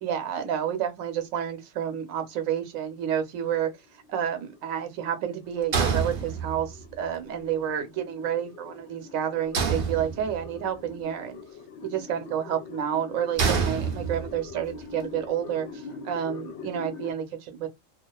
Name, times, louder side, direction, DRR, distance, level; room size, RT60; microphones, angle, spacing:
voice 1, 0.0-3.7 4.1-11.4 11.8-17.7, right 9 dB, 75° right, 1.1 m, -30 dB
sound 1, 2.8-17.1, left 4 dB, 65° left, 0.8 m, -44 dB
sound 2, 5.7-6.8 9.5-10.6 13.4-14.5, right 5 dB, 55° right, 0.7 m, -27 dB
2.4 x 2.3 x 2.2 m
omnidirectional pair, 1.4 m